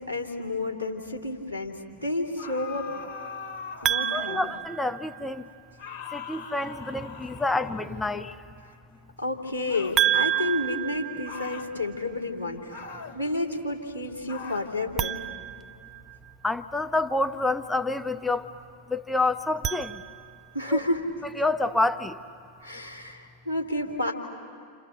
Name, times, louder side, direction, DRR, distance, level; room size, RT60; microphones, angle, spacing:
voice 1, 0.1-1.8 2.0-2.9 3.8-4.4 9.2-12.8 13.1-15.2 20.5-21.1 22.6-24.1, left 2 dB, 85° right, -1 dB, 3.2 m, -30 dB
sound 1, 2.4-4.7 5.8-8.0 9.7-10.1 11.2-11.7 12.7-13.2 14.3-14.7, left 5 dB, 50° left, 1.8 m, -41 dB
sound 2, 3.8-5.5 10.0-12.0 14.9-16.5 19.4-20.6, right 11 dB, 30° right, 0.8 m, -30 dB
voice 2, 4.1-5.4 6.1-8.3 16.4-18.5 18.9-20.0 20.7-20.8 21.4-22.2, left 2 dB, 5° left, 10 dB, 0.9 m, -28 dB
29.5 x 28.0 x 6.9 m, 2.2 s
figure-of-eight pair, 90°, 0 cm